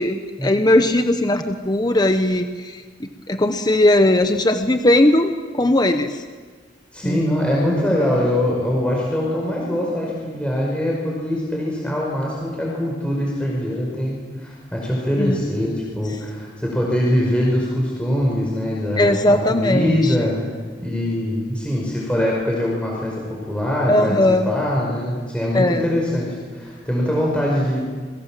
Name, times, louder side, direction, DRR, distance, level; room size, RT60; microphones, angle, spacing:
voice 1, 0.0-6.2 7.0-7.2 15.2-15.4 19.0-20.2 23.9-24.5 25.5-25.9, left 1 dB, 25° left, 7 dB, 1.1 m, -18 dB
voice 2, 6.9-19.2 19.5-20.5 20.8-24.1 24.5-27.8, left 1 dB, 5° left, -3 dB, 5.3 m, -22 dB
29.0 x 22.5 x 7.5 m, 1.5 s
head